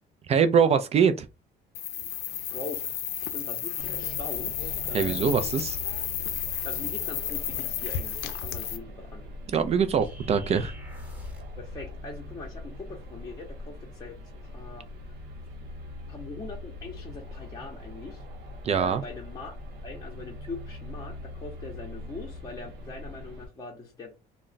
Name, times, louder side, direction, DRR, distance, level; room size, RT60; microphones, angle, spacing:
voice 1, 0.3-1.3 4.9-5.8 9.5-10.7 18.6-19.0, right 7 dB, 40° right, 0.4 m, -23 dB
sound 1, 1.7-8.8, left 10 dB, 70° left, 0.5 m, -32 dB
voice 2, 2.5-3.0 3.3-5.4 6.6-9.3 11.6-15.2 16.1-18.2 18.7-19.5 19.8-24.3, left 3 dB, 20° left, 0.7 m, -42 dB
sound 2, 3.8-23.5, left 1 dB, 75° right, 0.7 m, -42 dB
sound 3, 10.0-11.6, equal, 10° right, 0.9 m, -48 dB
2.3 x 2.1 x 3.8 m
cardioid pair, 110°, 17 cm